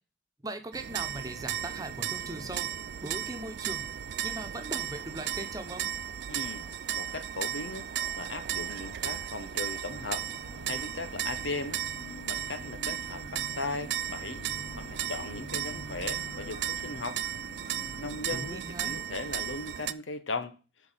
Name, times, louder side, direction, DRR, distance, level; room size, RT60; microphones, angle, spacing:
voice 1, 0.4-2.7 3.0-3.8 4.2-5.9 18.3-19.0, right 1 dB, 20° right, 1.1 m, -39 dB
sound 1, 0.7-19.9, right 11 dB, 60° right, 0.4 m, -35 dB
sound 2, 4.8-11.8, left 2 dB, 35° left, 2.1 m, -59 dB
voice 2, 6.3-7.9 8.2-10.2 10.7-11.8 12.3-14.5 14.8-17.2 18.0-20.5, left 3 dB, 85° left, 1.2 m, -38 dB
sound 3, 9.9-18.3, left 3 dB, 55° left, 0.6 m, -47 dB
7.8 x 4.8 x 7.2 m
head